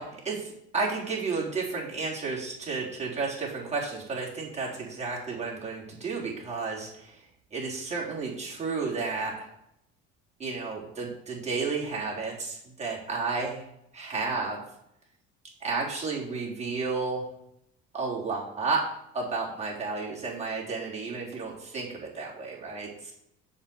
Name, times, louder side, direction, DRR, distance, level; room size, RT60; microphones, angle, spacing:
voice 1, 0.0-7.2 7.5-9.5 10.4-13.6 13.9-14.6 15.6-17.2 17.9-18.8 19.1-23.1, right 4 dB, 20° right, -4 dB, 3.4 m, -32 dB
7.1 x 4.9 x 7.1 m, 0.78 s
cardioid pair, 120°, 31 cm